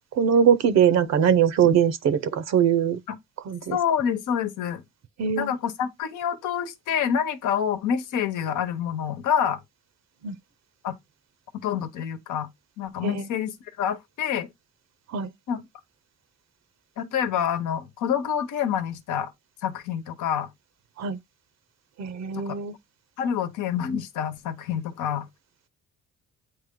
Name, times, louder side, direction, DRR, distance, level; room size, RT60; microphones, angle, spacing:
voice 1, 0.1-3.0 3.5-3.8 5.2-5.5 10.2-10.4 13.0-13.3 15.1-15.3 21.0-21.2 22.0-22.7, right 8 dB, 60° right, 0.7 m, -21 dB
voice 2, 3.7-4.8 5.4-9.6 10.8-10.9 11.6-12.5 12.8-14.5 15.5-15.6 17.0-19.3 19.6-20.5 22.3-22.6 23.2-25.3, left 8 dB, 80° left, 1.1 m, -27 dB
8.5 x 3.1 x 3.7 m
cardioid pair, 90°, 30 cm